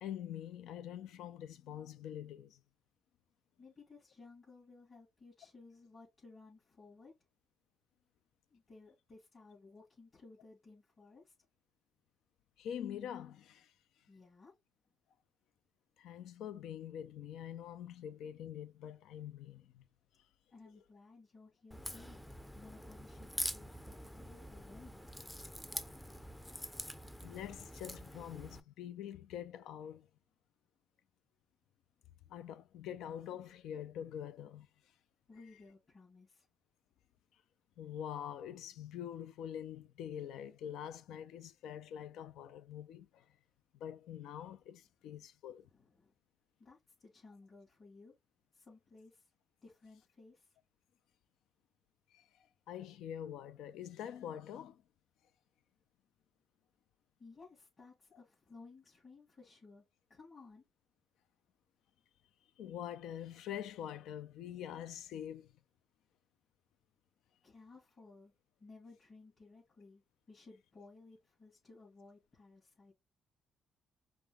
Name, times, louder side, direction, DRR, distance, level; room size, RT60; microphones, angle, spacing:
voice 1, 0.0-2.6 12.6-14.0 16.0-19.9 20.2-20.3 27.2-30.1 32.3-34.9 37.8-43.4 43.7-45.7 52.1-54.8 62.6-65.5, left 10 dB, 85° left, 0.5 m, -45 dB
voice 2, 3.6-7.1 8.5-11.3 14.1-14.5 20.5-22.2 22.5-25.0 35.3-36.5 45.7-46.1 46.6-48.1 48.5-49.3 49.6-50.6 57.2-59.8 60.1-60.6 67.4-68.3 68.6-70.0 70.3-72.9, left 3 dB, 40° left, 2.8 m, -58 dB
Crack, 21.7-28.6, equal, 5° left, 0.5 m, -45 dB
5.2 x 2.2 x 3.5 m
cardioid pair, 90°, 0 cm